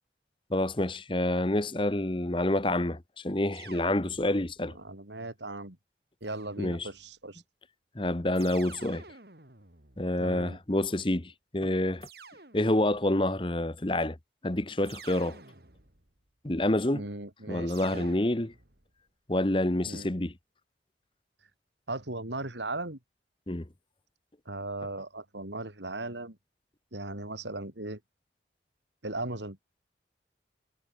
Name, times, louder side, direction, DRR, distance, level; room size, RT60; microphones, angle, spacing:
voice 1, 0.5-4.7 6.6-6.9 7.9-9.0 10.0-12.1 12.5-14.2 14.4-15.4 16.4-17.1 17.5-18.5 19.3-20.3 23.5-23.7, left 1 dB, 30° left, 1.1 m, -28 dB
sound 1, 3.5-4.7 6.2-7.1 8.3-10.7 12.0-13.1 14.8-16.2 17.7-18.9, right 4 dB, 60° right, 4.3 m, -51 dB
voice 2, 4.8-5.8 6.2-7.4 10.2-10.6 16.9-18.1 19.9-20.1 21.9-23.0 24.5-26.4 26.9-28.0 29.0-29.6, right 2 dB, 85° right, 4.7 m, -37 dB
head